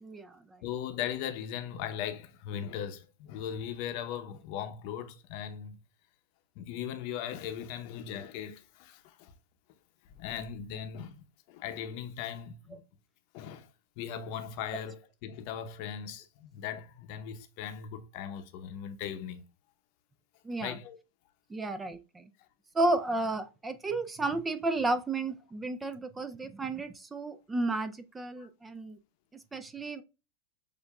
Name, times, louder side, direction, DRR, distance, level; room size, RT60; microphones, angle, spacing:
voice 1, 0.0-0.6 12.7-12.8 20.4-20.8 21.5-22.3 22.7-29.0 29.3-30.0, right 2 dB, 10° right, 0.3 m, -33 dB
voice 2, 0.6-5.8 6.6-9.3 10.2-12.8 13.3-13.7 14.0-19.4 20.6-21.0 28.4-28.5, left 9 dB, 50° left, 0.7 m, -39 dB
6.6 x 2.6 x 2.2 m
hypercardioid pair, 135°, 0 cm